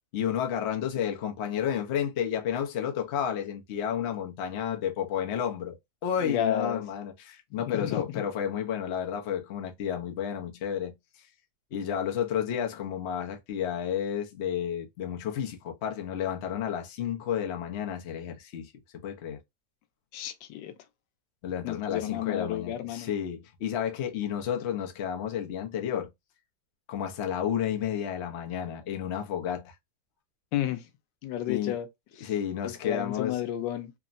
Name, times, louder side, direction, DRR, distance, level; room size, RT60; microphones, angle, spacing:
voice 1, 0.1-5.8 6.0-10.9 11.7-19.4 21.4-26.1 26.9-29.7 31.5-31.7 32.2-33.4, left 9 dB, 60° left, 0.7 m, -31 dB
voice 2, 6.2-6.8 7.6-8.0 20.1-20.7 21.6-23.1 30.5-30.9 31.2-31.9 32.2-32.3 32.6-33.9, left 11 dB, 90° left, 1.3 m, -31 dB
3.5 x 2.0 x 2.4 m
omnidirectional pair, 1.9 m